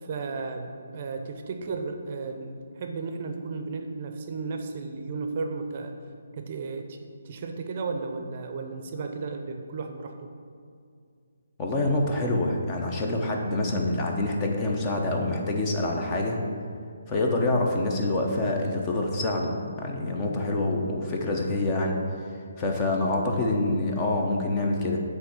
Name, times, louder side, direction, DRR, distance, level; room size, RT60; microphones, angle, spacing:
voice 1, 0.0-6.0 6.3-7.0 7.2-10.3, right 4 dB, 40° right, 4 dB, 0.6 m, -34 dB
voice 2, 11.6-16.4 17.1-22.0 22.6-25.0, left 2 dB, 25° left, 1 dB, 0.9 m, -26 dB
7.9 x 3.3 x 6.3 m, 2.2 s
figure-of-eight pair, 145°, 0 cm